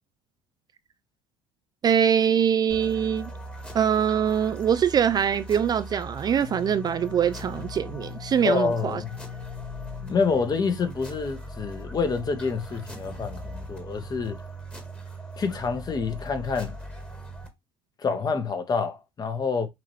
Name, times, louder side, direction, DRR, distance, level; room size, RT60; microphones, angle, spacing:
voice 1, 1.8-3.3 3.7-9.0, right 8 dB, 30° right, 0.4 m, -23 dB
sound 1, 2.7-17.5, equal, 10° left, 1.6 m, -39 dB
voice 2, 8.4-9.1 10.0-14.4 15.4-16.7 18.0-19.7, left 5 dB, 30° left, 1.2 m, -27 dB
5.9 x 2.8 x 3.1 m
hypercardioid pair, 75°, 13 cm